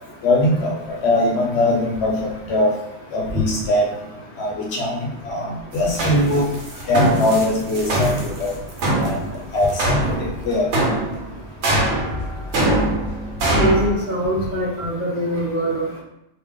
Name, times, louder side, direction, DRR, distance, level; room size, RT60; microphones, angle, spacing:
voice 1, 0.2-0.7 1.0-2.1 2.5-2.7 3.1-3.8 4.4-4.5 4.8-5.0 5.3-6.4 6.9-8.1 8.4-8.5 9.0-9.1 9.5-9.7 10.5-10.7, left 1 dB, 65° left, -1 dB, 1.0 m, -20 dB
sound 1, 5.7-13.9, right 1 dB, 70° right, 1.1 m, -22 dB
voice 2, 13.5-16.0, right 1 dB, 45° right, -4 dB, 1.0 m, -23 dB
3.3 x 2.8 x 3.5 m, 0.84 s
omnidirectional pair, 1.2 m